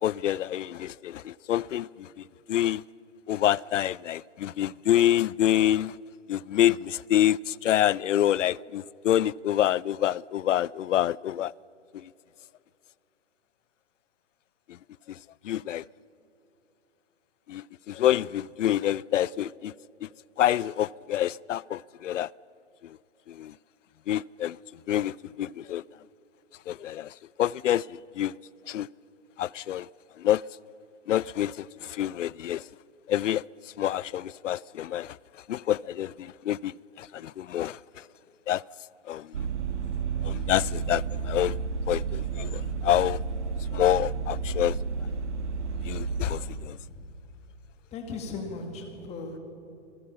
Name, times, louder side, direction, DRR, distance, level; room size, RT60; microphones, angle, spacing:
voice 1, 0.0-2.8 3.3-6.0 6.3-11.5 11.9-12.0 14.7-14.8 15.1-15.2 15.4-15.8 17.5-19.7 20.0-20.1 20.4-22.3 22.8-23.0 23.3-23.5 24.1-24.6 24.9-25.8 26.7-28.3 28.7-28.9 29.4-29.9 30.2-30.4 31.1-32.6 33.1-33.4 33.8-35.2 35.5-38.0 38.5-38.6 39.1-39.5 40.2-41.6 41.9-43.2 43.7-44.8 45.8-46.8, left 12 dB, 80° left, 0.5 m, -27 dB
Vehicle, 39.3-46.7, right 5 dB, 65° right, 1.8 m, -31 dB
voice 2, 47.9-49.4, left 3 dB, 15° left, 2.2 m, -37 dB
27.0 x 20.0 x 5.7 m
hypercardioid pair, 150°, 37 cm